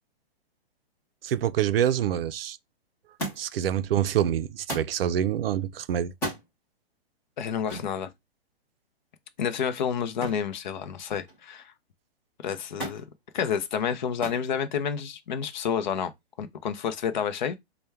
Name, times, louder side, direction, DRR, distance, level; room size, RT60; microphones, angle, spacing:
voice 1, 1.2-2.6 3.4-6.1, right 10 dB, 65° right, 0.5 m, -26 dB
Thump thud, 3.2-3.7 4.7-5.0 6.1-6.5 7.7-7.9 10.2-10.5 10.9-11.4 12.8-13.1 14.2-14.5 15.4-15.9 16.9-17.0, right 1 dB, 5° left, 0.6 m, -35 dB
voice 2, 7.4-8.1 9.4-11.7 12.4-13.0 13.3-16.1 16.4-17.6, left 7 dB, 45° left, 0.6 m, -29 dB
4.3 x 2.2 x 3.4 m
hypercardioid pair, 170°, 31 cm